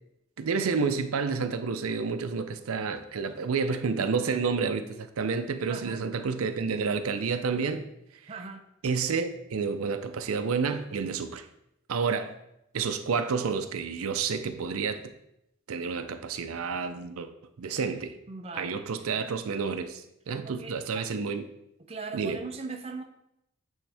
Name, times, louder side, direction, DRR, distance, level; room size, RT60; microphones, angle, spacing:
voice 1, 0.4-7.9 8.8-11.5 11.9-12.3 12.7-15.1 15.7-17.3 17.6-18.1 18.6-21.4 22.1-22.4, right 5 dB, 90° right, 9 dB, 0.5 m, -30 dB
voice 2, 5.7-6.0 8.3-8.6 18.3-18.9 20.4-21.1 21.9-23.0, right 4 dB, 30° right, 5 dB, 0.5 m, -39 dB
8.8 x 3.6 x 3.4 m, 0.81 s
head